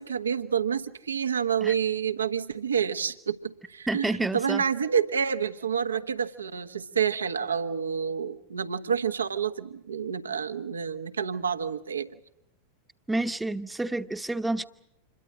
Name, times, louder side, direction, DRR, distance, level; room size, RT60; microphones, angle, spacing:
voice 1, 0.0-12.1, right 7 dB, 70° right, 1.3 m, -28 dB
voice 2, 3.9-4.6 13.1-14.6, right 2 dB, 5° right, 1.1 m, -29 dB
27.5 x 22.0 x 6.4 m
figure-of-eight pair, 90°, 0 cm